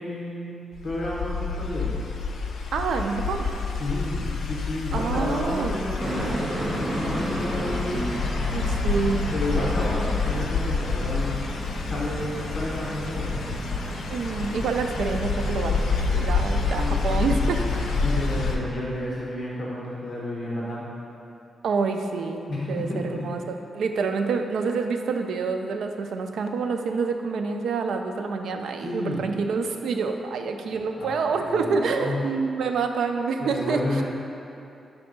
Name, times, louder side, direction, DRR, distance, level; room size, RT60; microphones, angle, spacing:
voice 1, 0.0-1.9 3.7-8.0 9.3-11.5 11.8-13.3 16.7-17.0 17.7-20.8 22.5-23.3 28.8-29.2 30.6-32.2 33.4-34.0, left 1 dB, 40° left, -6 dB, 0.9 m, -31 dB
sound 1, 0.8-18.6, left 4 dB, 85° left, 0.5 m, -28 dB
voice 2, 2.7-3.5 4.9-5.8 8.5-9.3 14.1-17.8 21.6-22.4 22.7-23.4 23.7-34.0, right 4 dB, 85° right, 5 dB, 0.4 m, -27 dB
sound 2, 6.0-18.4, right 1 dB, 25° right, 1.0 m, -33 dB
6.2 x 3.4 x 5.2 m, 2.7 s
wide cardioid pair, 145°, 0 cm